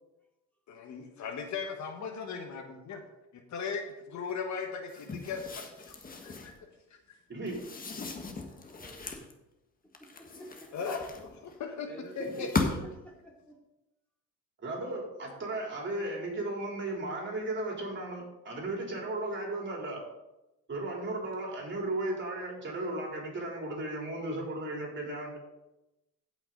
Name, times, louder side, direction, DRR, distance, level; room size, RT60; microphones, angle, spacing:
voice 1, 0.7-3.0 3.3-5.9 6.2-6.5 10.7-11.3 11.6-11.9 12.2-12.5, left 5 dB, 55° left, 4 dB, 1.4 m, -37 dB
sound 1, 4.9-6.6 7.4-9.3 9.9-11.5 12.2-13.0, left 3 dB, 25° left, 1.4 m, -37 dB
voice 2, 7.3-7.6 12.2-12.3 14.6-20.0 20.7-25.4, right 2 dB, 30° right, -1 dB, 3.7 m, -35 dB
voice 3, 10.0-10.7 11.8-13.6, right 1 dB, 5° left, -1 dB, 2.7 m, -47 dB
15.0 x 6.0 x 4.0 m, 0.97 s
cardioid pair, 110°, 35 cm